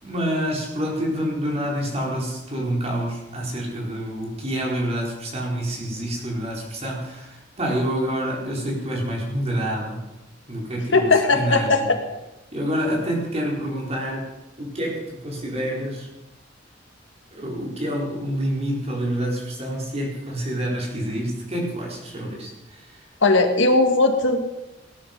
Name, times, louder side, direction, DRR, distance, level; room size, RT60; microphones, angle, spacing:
voice 1, 0.0-10.0 10.5-11.9 12.5-14.3 14.6-16.1 17.3-22.8, equal, 35° right, -2 dB, 4.5 m, -27 dB
voice 2, 10.8-12.0 23.2-24.4, left 3 dB, 80° left, 5 dB, 1.9 m, -18 dB
18.5 x 10.5 x 5.4 m, 0.99 s
head